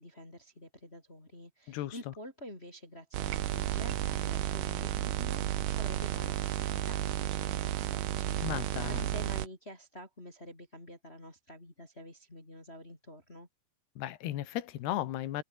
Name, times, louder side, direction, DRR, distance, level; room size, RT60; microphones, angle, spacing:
voice 1, 0.0-5.4 5.7-13.5, equal, 15° left, 3.9 m, -48 dB
voice 2, 1.7-2.1 8.4-9.1 14.0-15.4, left 13 dB, 70° left, 3.3 m, -35 dB
sound 1, 3.1-9.5, right 14 dB, 85° right, 1.8 m, -32 dB
omnidirectional pair, 5.3 m